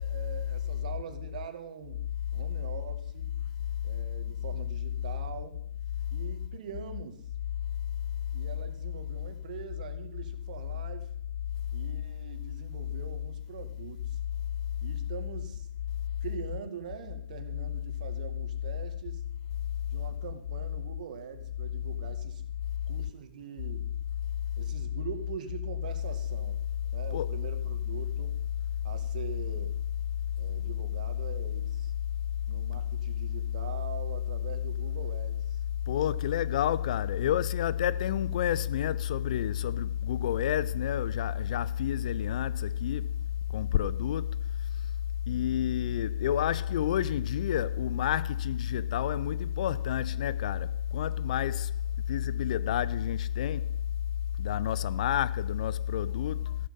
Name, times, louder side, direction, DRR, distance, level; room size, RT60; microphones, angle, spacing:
voice 1, 0.0-2.0 2.3-3.3 3.8-5.6 6.1-7.2 8.3-11.1 11.7-14.2 14.8-15.7 16.2-19.2 19.8-22.4 22.9-23.9 24.6-26.7 26.9-28.4 28.8-29.7 30.4-31.9 32.5-35.6, right 8 dB, 55° right, 2.3 m, -43 dB
voice 2, 35.9-43.1 43.5-44.3 45.3-51.7 52.1-53.6 54.4-56.6, left 11 dB, 50° left, 0.6 m, -29 dB
14.0 x 13.0 x 5.5 m
figure-of-eight pair, 120°, 5 cm